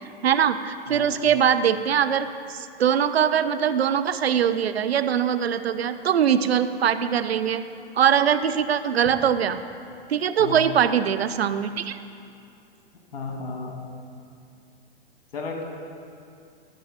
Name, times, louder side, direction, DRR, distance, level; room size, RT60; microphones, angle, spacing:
voice 1, 0.2-7.6 8.0-9.6 10.1-12.0, right 8 dB, 85° right, 11 dB, 0.6 m, -22 dB
voice 2, 0.9-1.3 10.4-10.8 13.1-13.8 15.3-15.6, left 4 dB, 70° left, 1 dB, 2.0 m, -33 dB
12.0 x 6.2 x 5.0 m, 2.5 s
hypercardioid pair, 120°, 30 cm